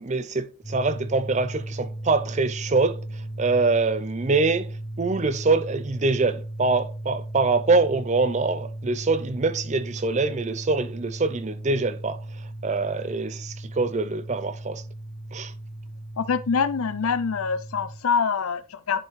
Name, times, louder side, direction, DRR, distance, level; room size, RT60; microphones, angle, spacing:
voice 1, 0.0-3.0 3.4-4.7 5.0-12.2 12.6-14.8 15.3-15.5, right 3 dB, 35° right, 0.5 m, -24 dB
sound 1, 0.6-18.0, right 1 dB, 15° left, 1.4 m, -36 dB
voice 2, 16.2-19.0, left 5 dB, 85° left, 0.6 m, -25 dB
10.0 x 4.5 x 3.1 m
head